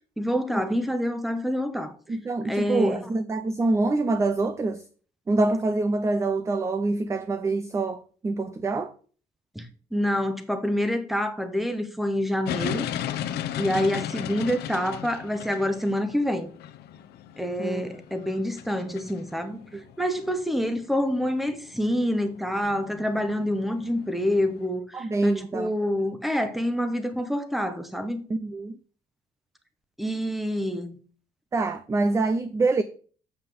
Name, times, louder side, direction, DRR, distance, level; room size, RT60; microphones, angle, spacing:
voice 1, 0.2-2.0 2.4-3.1 9.5-12.9 13.6-16.5 17.4-19.6 20.0-28.2 30.0-30.9, equal, ahead, 1.0 m, -27 dB
voice 2, 2.1-4.8 5.3-8.9 13.7-14.0 17.6-17.9 19.7-19.8 24.9-25.7 28.3-28.8 31.5-32.8, right 3 dB, 15° right, 0.4 m, -26 dB
sound 1, 12.4-24.7, left 11 dB, 80° left, 0.7 m, -36 dB
7.4 x 5.7 x 6.8 m
cardioid pair, 165°, 17 cm